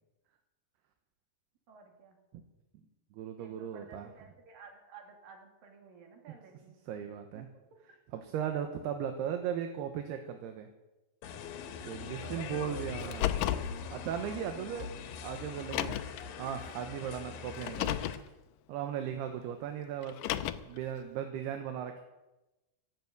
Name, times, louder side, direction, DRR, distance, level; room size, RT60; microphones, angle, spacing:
voice 1, 1.7-2.2 3.4-6.8 7.3-7.5 8.1-8.2 12.2-13.3, right 5 dB, 60° right, 3 dB, 4.2 m, -54 dB
voice 2, 3.1-4.1 6.9-7.5 8.1-10.7 11.8-13.5 13.9-14.9 15.2-16.0 16.4-18.0 18.7-22.0, right 8 dB, 75° right, 6 dB, 3.0 m, -37 dB
sound 1, 11.2-18.2, left 6 dB, 70° left, 2.8 m, -43 dB
Car, 13.0-13.7 14.8-14.9 15.6-16.2 17.5-18.2 20.0-20.8, left 13 dB, 85° left, 1.9 m, -33 dB
14.0 x 12.0 x 8.1 m, 1.0 s
omnidirectional pair, 4.8 m